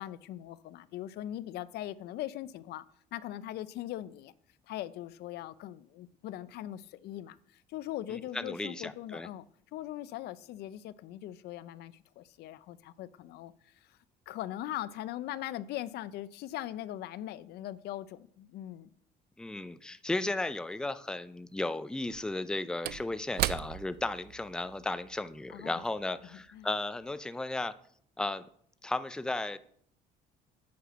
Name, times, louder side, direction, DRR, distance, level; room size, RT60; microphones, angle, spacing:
voice 1, 0.0-2.8 3.1-4.3 4.7-9.5 9.7-14.0 14.3-18.9 25.5-25.8 26.3-26.7, left 13 dB, 75° left, 0.5 m, -40 dB
voice 2, 8.1-9.3 19.4-27.7 28.2-28.5 28.8-29.6, left 2 dB, 5° left, 0.5 m, -35 dB
Slam / Wood, 20.4-20.5 21.9-26.6 27.0-27.1, right 15 dB, 75° right, 0.4 m, -39 dB
8.5 x 5.8 x 6.1 m
cardioid pair, 110°, 17 cm